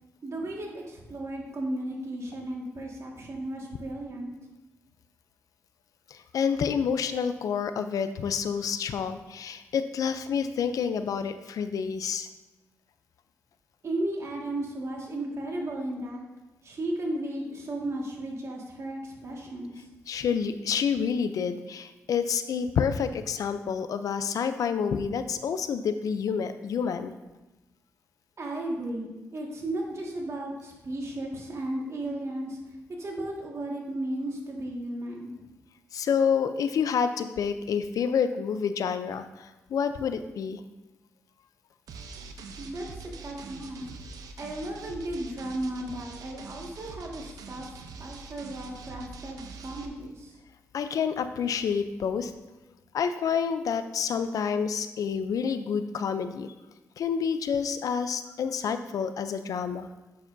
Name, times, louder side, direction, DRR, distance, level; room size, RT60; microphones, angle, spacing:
voice 1, 0.2-4.3 13.8-16.3 16.6-19.9 28.4-32.6 33.0-35.4 42.6-43.9 44.4-47.7 48.0-50.4, right 1 dB, 50° right, -1 dB, 1.8 m, -35 dB
voice 2, 6.1-12.3 20.1-27.1 35.9-40.6 50.7-52.3 52.9-56.5 57.0-59.9, left 6 dB, 75° left, 10 dB, 0.5 m, -28 dB
sound 1, 41.9-49.9, right 4 dB, 85° right, 0.6 m, -44 dB
8.3 x 6.9 x 2.6 m, 1.0 s
cardioid pair, 60°, 6 cm